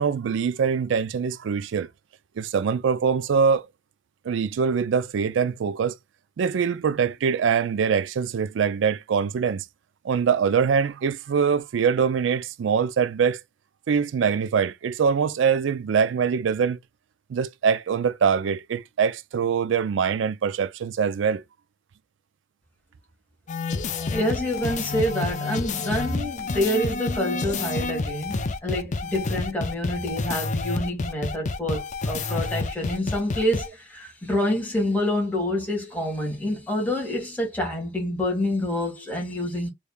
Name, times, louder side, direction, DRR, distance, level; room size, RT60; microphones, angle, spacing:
voice 1, 0.0-1.9 2.4-3.7 4.2-6.0 6.4-9.6 10.0-13.4 13.9-16.8 17.3-21.4, right 6 dB, 70° right, 0.4 m, -23 dB
sound 1, 23.5-33.7, left 3 dB, 40° left, 0.5 m, -29 dB
voice 2, 24.1-39.7, left 1 dB, 10° left, 1.7 m, -27 dB
3.5 x 3.2 x 2.3 m
head